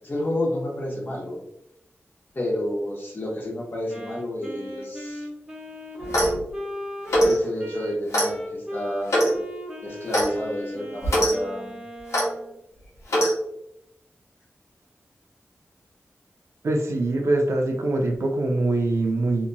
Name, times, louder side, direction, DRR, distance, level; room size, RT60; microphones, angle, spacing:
voice 1, 0.0-1.4 2.3-5.3 7.2-9.4 9.8-11.8, left 1 dB, 45° left, -2 dB, 1.0 m, -30 dB
Wind instrument woodwind instrument, 3.9-12.5, equal, 15° right, 0.9 m, -37 dB
Clock, 6.0-6.4 7.1-7.4 8.1-8.3 9.1-9.3 10.1-10.3 11.0-11.3 12.1-12.3 13.1-13.3, equal, 90° left, 1.0 m, -21 dB
voice 2, 16.6-19.5, right 2 dB, 70° right, 2 dB, 0.5 m, -23 dB
2.9 x 2.6 x 2.2 m, 0.80 s
wide cardioid pair, 75°, 5 cm